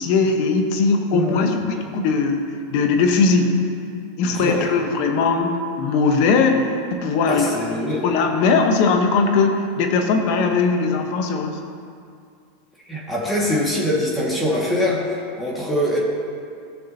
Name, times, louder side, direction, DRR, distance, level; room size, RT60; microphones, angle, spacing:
voice 1, 0.0-2.4 2.7-3.5 4.2-7.5 8.0-11.6, left 4 dB, 60° left, 4 dB, 1.2 m, -19 dB
voice 2, 1.1-1.6 4.2-4.6 7.3-8.0 12.9-16.0, left 1 dB, 15° left, -4 dB, 2.2 m, -23 dB
15.0 x 6.6 x 3.0 m, 2.3 s
hypercardioid pair, 105°, 0 cm